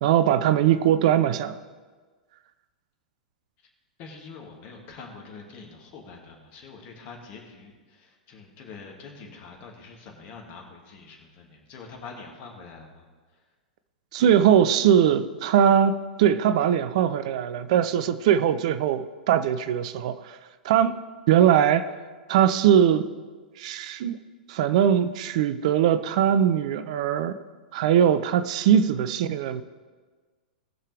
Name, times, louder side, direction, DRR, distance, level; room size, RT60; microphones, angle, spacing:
voice 1, 0.0-1.6 14.1-20.4 20.6-21.0 21.3-21.9 22.3-23.1 23.6-24.2 24.5-27.3 27.7-29.6, right 9 dB, 50° right, 0.6 m, -21 dB
voice 2, 4.0-13.0, left 4 dB, 40° left, 2.2 m, -45 dB
19.0 x 6.6 x 3.4 m
figure-of-eight pair, 100°, 5 cm